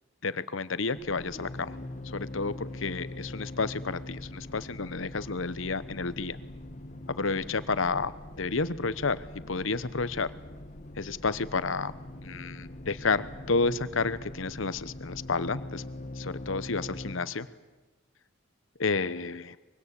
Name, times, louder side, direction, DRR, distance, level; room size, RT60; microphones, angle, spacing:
voice 1, 0.2-1.8 2.0-6.4 7.1-8.1 8.4-10.3 11.0-11.9 12.2-15.8 16.2-17.5 18.8-19.6, left 4 dB, 80° left, 15 dB, 1.0 m, -30 dB
sound 1, 1.0-17.2, left 1 dB, 35° left, 1.4 m, -42 dB
24.0 x 22.5 x 8.4 m, 1.2 s
head